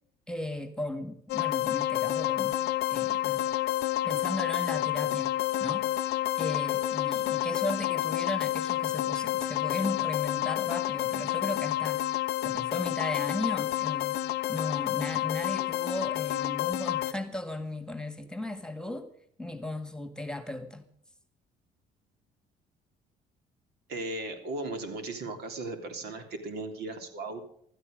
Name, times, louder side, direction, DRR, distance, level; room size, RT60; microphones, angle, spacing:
voice 1, 0.3-2.6 2.9-3.4 4.0-5.3 5.6-5.9 6.4-12.0 12.4-19.1 19.4-20.9, left 1 dB, 5° left, 1.8 m, -36 dB
sound 1, 1.3-17.1, left 15 dB, 75° left, 0.6 m, -29 dB
voice 2, 23.9-27.5, right 2 dB, 75° right, 3.4 m, -37 dB
16.0 x 13.0 x 5.2 m
cardioid pair, 110°, 17 cm